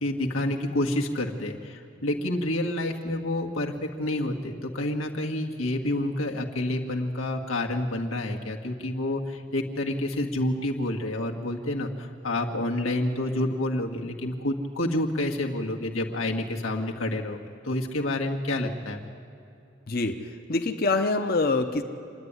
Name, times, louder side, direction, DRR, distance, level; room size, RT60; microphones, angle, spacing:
voice 1, 0.0-19.0, left 1 dB, 85° left, 1 dB, 1.8 m, -28 dB
voice 2, 19.9-21.8, left 3 dB, 45° left, 5 dB, 0.9 m, -25 dB
26.5 x 10.0 x 9.7 m, 2.6 s
head